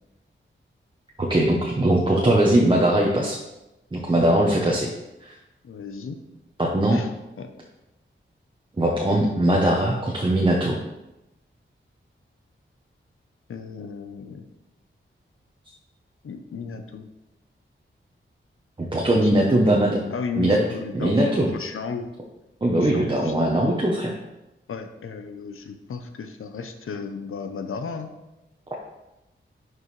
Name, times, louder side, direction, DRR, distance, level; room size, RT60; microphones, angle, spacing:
voice 1, 1.2-3.4 3.9-4.9 5.2-5.3 6.6-7.0 8.8-10.8 18.8-20.0 20.4-20.6 20.9-21.5 22.6-24.1, right 1 dB, 25° right, -2 dB, 0.9 m, -20 dB
voice 2, 5.6-6.2 6.9-7.1 7.4-7.5 13.5-14.4 16.2-17.1 19.2-19.8 20.1-22.1 22.8-23.5 24.7-28.1, left 5 dB, 85° left, 7 dB, 0.8 m, -34 dB
11.0 x 4.8 x 3.2 m, 0.95 s
wide cardioid pair, 130°, 21 cm